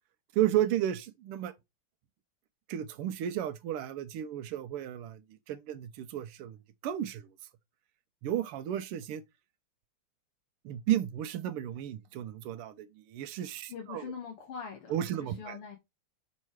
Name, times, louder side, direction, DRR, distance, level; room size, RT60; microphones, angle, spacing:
voice 1, 0.3-1.5 2.7-5.2 5.5-6.6 6.8-7.3 8.2-9.2 10.6-14.1 14.9-15.6, right 11 dB, 90° right, 1.6 m, -33 dB
voice 2, 13.7-15.8, left 6 dB, 85° left, 2.5 m, -43 dB
6.3 x 5.5 x 4.5 m
omnidirectional pair, 2.4 m